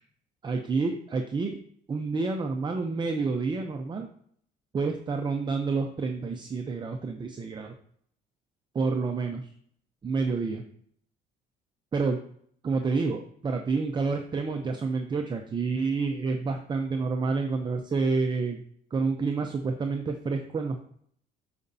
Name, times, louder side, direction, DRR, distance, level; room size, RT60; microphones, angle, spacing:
voice 1, 0.4-1.6 1.9-4.1 4.7-7.7 8.7-9.5 10.0-10.6 11.9-12.2 12.6-18.6 18.9-20.8, right 4 dB, 25° right, 4 dB, 0.6 m, -29 dB
12.0 x 5.0 x 2.7 m, 0.63 s
cardioid pair, 110°, 17 cm